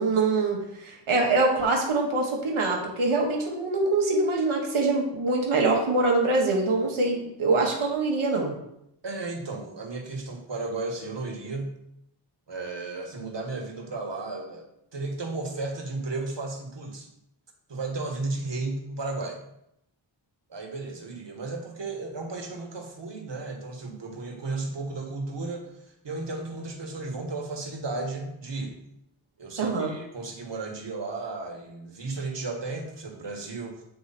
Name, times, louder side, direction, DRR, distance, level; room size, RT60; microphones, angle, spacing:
voice 1, 0.0-8.5 29.6-29.9, right 3 dB, 80° right, 0 dB, 1.4 m, -24 dB
voice 2, 9.0-11.7 12.5-14.7 14.9-17.1 17.7-19.4 20.5-28.8 29.4-33.8, right 3 dB, 60° right, 1 dB, 1.6 m, -34 dB
9.3 x 3.1 x 4.1 m, 0.77 s
wide cardioid pair, 60°, 48 cm